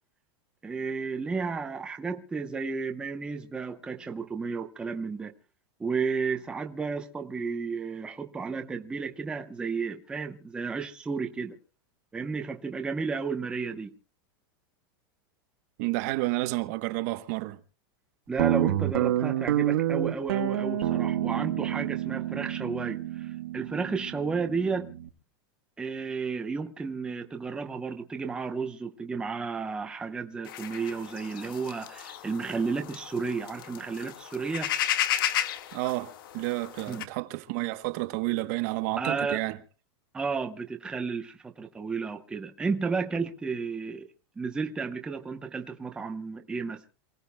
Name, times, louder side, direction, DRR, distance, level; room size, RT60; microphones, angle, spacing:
voice 1, 0.6-5.3 5.8-11.6 12.1-13.9 18.3-24.9 25.8-34.7 36.9-37.0 39.0-39.4 40.1-44.1 44.4-46.8, right 4 dB, 10° right, 0.8 m, -32 dB
voice 2, 15.8-17.6 35.7-39.6, right 20 dB, 45° right, 1.0 m, -30 dB
Guitar, 18.4-25.1, right 12 dB, 75° right, 1.3 m, -28 dB
sound 1, 30.5-37.0, left 11 dB, 65° left, 1.6 m, -34 dB
28.0 x 17.5 x 2.2 m
supercardioid pair, 165°, 12 cm